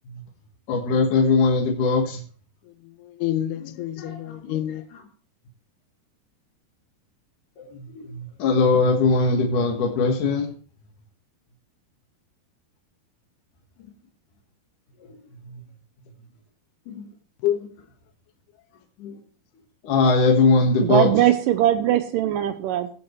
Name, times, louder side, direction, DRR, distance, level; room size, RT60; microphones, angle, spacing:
voice 1, 0.7-2.2 4.0-4.4 7.6-10.5 15.0-15.1 16.9-17.1 19.0-19.2 19.8-21.1, left 3 dB, 60° left, 2.9 m, -21 dB
voice 2, 2.7-4.9 17.4-17.6, left 12 dB, 85° left, 2.6 m, -28 dB
voice 3, 20.8-22.9, right 12 dB, 80° right, 1.9 m, -20 dB
20.0 x 7.9 x 3.2 m
omnidirectional pair, 4.6 m